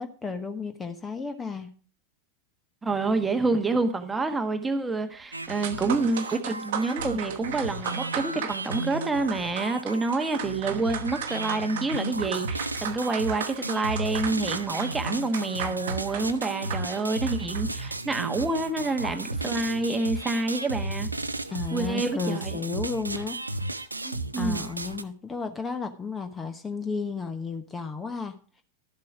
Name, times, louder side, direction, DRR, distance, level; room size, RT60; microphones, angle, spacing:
voice 1, 0.0-1.7 21.5-23.4 24.4-28.4, left 4 dB, 15° left, 8 dB, 1.1 m, -33 dB
voice 2, 2.8-21.1 21.7-22.6 24.0-24.7, right 3 dB, 10° right, 8 dB, 1.2 m, -28 dB
sound 1, 5.2-5.3 5.5-18.5, right 9 dB, 55° right, 1.0 m, -37 dB
sound 2, 5.3-25.0, right 2 dB, 80° right, 0.6 m, -34 dB
12.5 x 7.4 x 4.9 m, 0.39 s
figure-of-eight pair, 90°, 0 cm